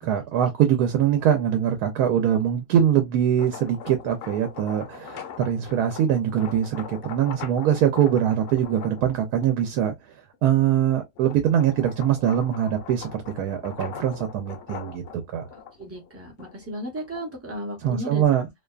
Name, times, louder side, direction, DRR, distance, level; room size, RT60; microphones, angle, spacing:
voice 1, 0.0-10.1 10.4-15.0 15.3-15.5 17.8-18.5, right 9 dB, 80° right, 1.1 m, -23 dB
sound 1, 3.2-9.8 10.3-17.5, left 8 dB, 65° left, 0.8 m, -41 dB
voice 2, 15.8-18.5, equal, 15° right, 0.5 m, -35 dB
2.6 x 2.2 x 2.3 m
omnidirectional pair, 1.6 m